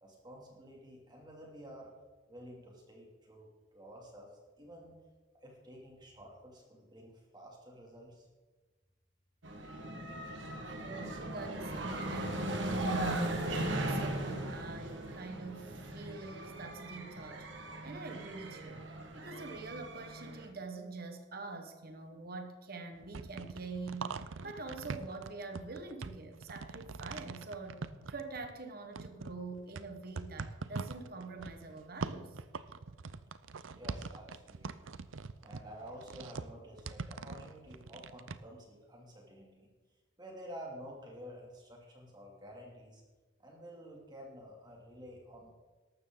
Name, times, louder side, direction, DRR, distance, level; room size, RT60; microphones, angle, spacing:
voice 1, 0.0-1.9 2.3-4.9 5.4-8.3 33.7-34.9 35.4-39.7 40.2-43.0 43.4-45.5, equal, 20° right, -2 dB, 3.0 m, -51 dB
sound 1, 9.4-20.5, right 1 dB, 70° right, 1.8 m, -38 dB
voice 2, 10.8-18.8 19.1-32.4, right 3 dB, 50° right, 5 dB, 1.5 m, -45 dB
sound 2, 22.9-28.6 29.0-38.4, right 4 dB, 90° right, 0.6 m, -43 dB
14.0 x 12.0 x 4.0 m, 1.3 s
head